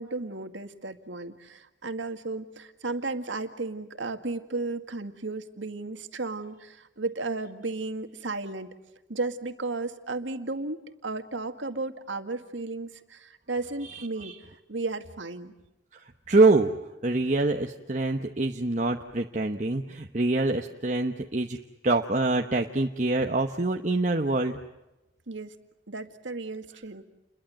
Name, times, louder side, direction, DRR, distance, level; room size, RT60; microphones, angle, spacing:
voice 1, 0.0-8.7 9.1-14.3 14.7-15.5 25.3-25.6 25.9-27.1, right 3 dB, 85° right, 7 dB, 2.0 m, -34 dB
voice 2, 13.8-14.4 16.3-16.7 17.0-21.6 21.8-24.6, right 2 dB, 40° right, 3 dB, 1.1 m, -25 dB
30.0 x 22.0 x 7.7 m, 0.99 s
head